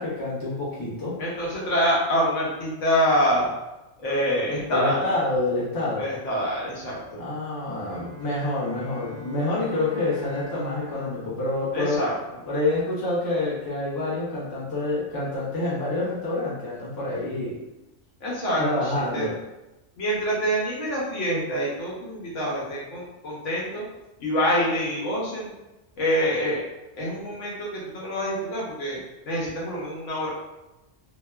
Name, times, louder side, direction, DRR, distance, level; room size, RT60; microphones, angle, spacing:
voice 1, 0.0-1.2 4.7-6.1 7.2-12.0 12.5-17.6 18.6-19.4, left 2 dB, 25° left, -7 dB, 0.6 m, -27 dB
voice 2, 1.2-3.5 4.0-5.1 6.0-7.2 11.7-12.4 18.2-19.3 20.0-23.8 24.2-25.5 26.0-26.6 27.0-29.0 29.2-30.3, equal, 80° left, -5 dB, 1.1 m, -26 dB
Bowed string instrument, 7.8-12.7, left 2 dB, 85° right, 1.2 m, -42 dB
2.9 x 2.1 x 2.3 m, 1.0 s
omnidirectional pair, 1.2 m